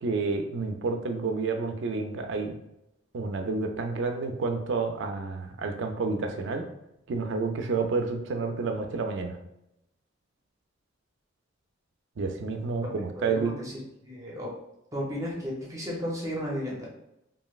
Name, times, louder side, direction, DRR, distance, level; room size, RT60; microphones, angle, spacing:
voice 1, 0.0-2.6 3.1-6.6 7.1-9.4 12.2-13.5, right 4 dB, 65° right, 5 dB, 0.4 m, -29 dB
voice 2, 13.1-14.5 14.9-16.9, equal, 15° right, -4 dB, 0.6 m, -34 dB
3.0 x 2.6 x 2.3 m, 0.83 s
head